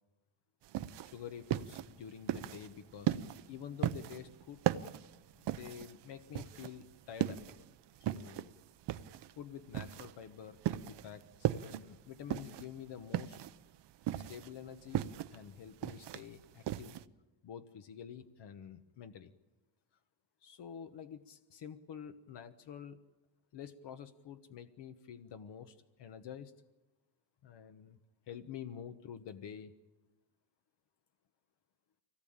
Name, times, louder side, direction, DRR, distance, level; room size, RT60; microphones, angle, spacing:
sound 1, 0.6-17.0, right 12 dB, 65° right, 0.8 m, -37 dB
voice 1, 1.0-3.2 3.5-4.6 5.4-7.7 8.0-8.5 9.4-13.4 14.1-17.0 17.4-19.3 20.4-23.0 23.5-26.5 27.4-28.0 28.3-29.7, left 8 dB, 65° left, 8 dB, 1.2 m, -48 dB
24.5 x 18.0 x 8.8 m, 1.1 s
cardioid pair, 155°, 45 cm